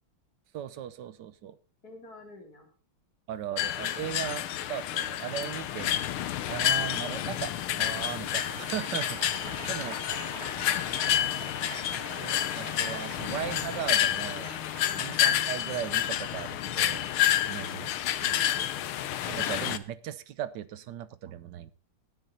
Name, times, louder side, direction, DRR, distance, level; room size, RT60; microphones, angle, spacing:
voice 1, 0.5-1.6 3.3-6.0 6.5-9.2 9.7-10.0 12.2-14.5 15.0-17.1 17.5-18.7 19.3-21.7, right 11 dB, 65° right, 16 dB, 1.3 m, -37 dB
voice 2, 1.8-2.7 14.8-15.1 17.4-17.9, left 2 dB, 45° left, 0 dB, 4.5 m, -51 dB
sound 1, 3.6-19.8, left 11 dB, 85° left, 1.7 m, -29 dB
Crowd, 8.2-16.5, right 4 dB, 35° right, 1.6 m, -45 dB
17.0 x 9.5 x 4.1 m, 0.34 s
omnidirectional pair, 2.3 m